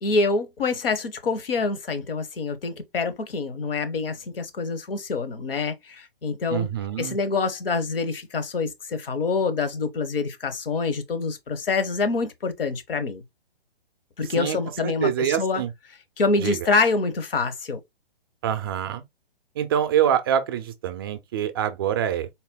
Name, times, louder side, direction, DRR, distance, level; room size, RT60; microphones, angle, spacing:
voice 1, 0.0-6.7 7.0-13.2 14.2-15.6 16.2-17.8, left 4 dB, 70° left, 1.0 m, -26 dB
voice 2, 6.5-7.2 14.4-14.6 14.8-15.7 16.4-16.7 18.4-19.0 19.6-22.3, right 9 dB, 25° right, 0.4 m, -25 dB
4.2 x 2.1 x 3.6 m
hypercardioid pair, 140°, 30 cm